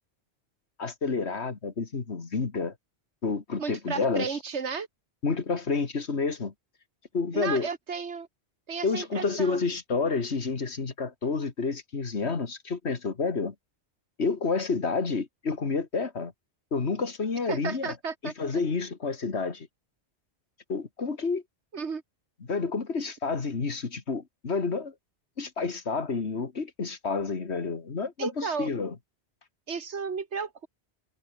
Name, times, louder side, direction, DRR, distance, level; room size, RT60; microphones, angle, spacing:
voice 1, 0.8-2.7 3.2-4.3 5.2-6.5 7.1-7.7 8.8-13.5 14.2-16.3 16.7-17.9 18.2-19.7 20.7-21.4 22.4-24.9 25.4-29.0, left 4 dB, 75° left, 2.3 m, -29 dB
voice 2, 3.6-4.9 7.3-8.3 8.7-9.6 17.5-18.3 21.7-22.0 28.2-28.7 29.7-30.7, right 5 dB, 85° right, 1.9 m, -33 dB
omnidirectional pair, 1.1 m